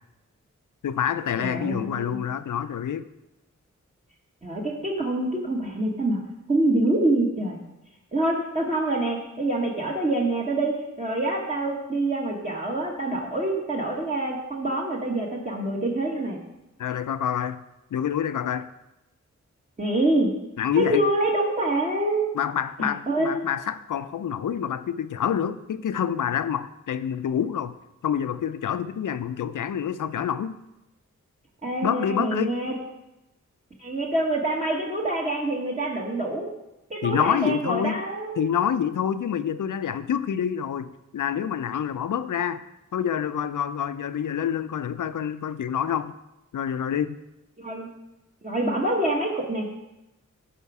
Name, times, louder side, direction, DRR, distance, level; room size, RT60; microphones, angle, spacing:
voice 1, 0.8-3.0 16.8-17.6 17.9-18.7 20.6-21.1 22.3-27.8 28.0-30.5 31.8-32.5 37.0-38.0 38.4-42.6 42.9-46.1 46.5-47.2, left 8 dB, 80° left, 13 dB, 0.5 m, -27 dB
voice 2, 1.4-2.2 4.4-6.2 6.5-7.6 8.1-16.4 19.8-20.3 20.7-22.2 22.8-23.5 31.6-32.7 33.8-36.5 36.9-38.4 47.6-47.9 48.4-49.7, right 2 dB, 25° right, -3 dB, 1.2 m, -26 dB
11.0 x 5.1 x 4.7 m, 0.94 s
wide cardioid pair, 100°, 31 cm